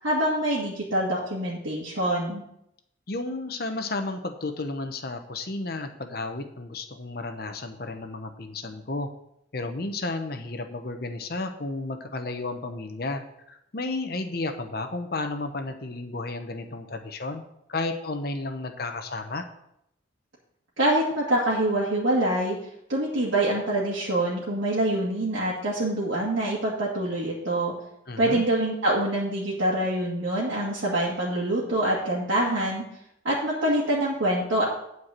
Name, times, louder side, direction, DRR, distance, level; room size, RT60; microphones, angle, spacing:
voice 1, 0.0-2.4 20.8-22.6 22.9-27.7 28.2-32.8 33.2-34.6, right 1 dB, 75° right, -7 dB, 2.1 m, -25 dB
voice 2, 3.1-9.1 9.5-13.2 13.5-17.4 17.7-19.4 28.1-28.4, left 2 dB, 50° left, 6 dB, 0.9 m, -32 dB
9.3 x 4.7 x 7.4 m, 0.78 s
head